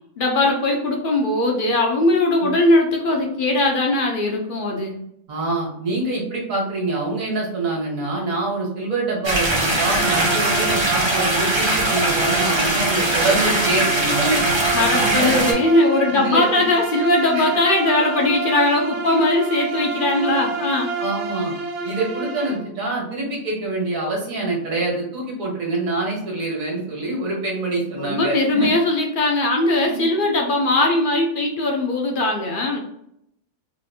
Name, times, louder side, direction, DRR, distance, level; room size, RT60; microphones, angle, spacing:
voice 1, 0.2-5.0 14.7-20.9 28.0-32.8, left 2 dB, 55° left, 1 dB, 0.6 m, -20 dB
voice 2, 5.3-14.4 15.0-15.5 16.1-16.6 17.3-17.5 21.0-21.5 21.8-28.7 29.8-30.1, right 2 dB, 65° right, -3 dB, 1.6 m, -25 dB
sound 1, 9.2-15.5, right 1 dB, 40° right, 0.4 m, -21 dB
Bowed string instrument, 9.9-22.7, right 4 dB, 85° right, 1.1 m, -28 dB
3.9 x 2.5 x 2.7 m, 0.76 s
omnidirectional pair, 1.5 m